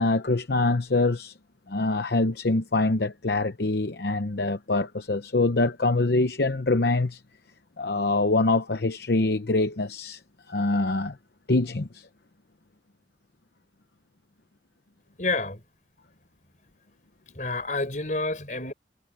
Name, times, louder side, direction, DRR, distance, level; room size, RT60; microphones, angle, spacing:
voice 1, 0.0-1.3 1.7-7.2 7.8-10.2 10.5-11.2 11.5-12.1, left 2 dB, 65° left, 0.8 m, -24 dB
voice 2, 15.2-15.6 17.4-18.7, left 3 dB, 45° left, 5.2 m, -28 dB
head